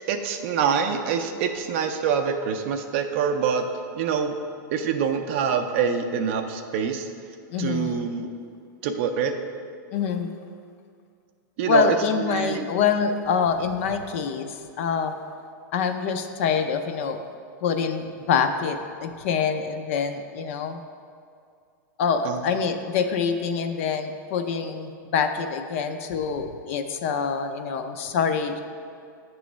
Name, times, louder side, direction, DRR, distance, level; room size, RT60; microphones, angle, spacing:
voice 1, 0.1-3.6 3.9-4.3 4.7-7.1 7.6-8.3 8.8-9.3 11.6-12.7 22.2-22.4, right 7 dB, 40° right, 6 dB, 0.4 m, -25 dB
voice 2, 7.5-8.2 9.9-10.3 11.6-15.2 15.7-17.2 17.6-20.8 22.0-28.6, left 6 dB, 40° left, 7 dB, 0.4 m, -25 dB
8.4 x 3.1 x 6.1 m, 2.3 s
supercardioid pair, 175°, 10 cm